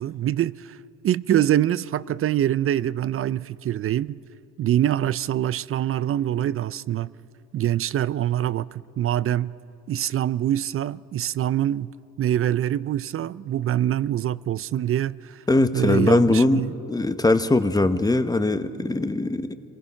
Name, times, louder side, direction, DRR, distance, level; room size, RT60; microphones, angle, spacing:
voice 1, 0.0-4.2 4.6-7.1 7.5-9.6 9.9-11.9 12.2-15.4 15.7-16.7, right 11 dB, 45° right, 0.4 m, -24 dB
voice 2, 15.5-16.6 16.9-19.5, left 2 dB, 15° left, 0.9 m, -20 dB
26.5 x 19.5 x 5.7 m
cardioid pair, 90°, 30 cm